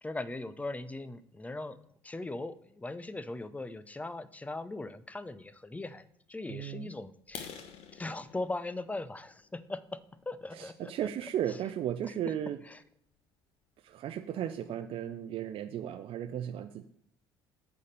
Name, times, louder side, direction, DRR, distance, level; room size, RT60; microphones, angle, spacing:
voice 1, 0.0-1.8 2.0-7.5 7.9-10.0 10.3-11.1 11.5-11.6 12.1-12.3 12.7-12.8, left 2 dB, 10° left, 14 dB, 0.6 m, -39 dB
voice 2, 6.5-6.9 10.5-12.6 13.8-16.8, right 10 dB, 45° right, 8 dB, 0.5 m, -35 dB
sound 1, 7.2-11.0 11.5-11.7 12.2-12.3 12.7-12.9 13.2-13.3 13.7-13.8 14.0-14.5, left 7 dB, 55° left, 1.2 m, -49 dB
8.3 x 4.1 x 6.7 m, 0.69 s
figure-of-eight pair, 55°, 13 cm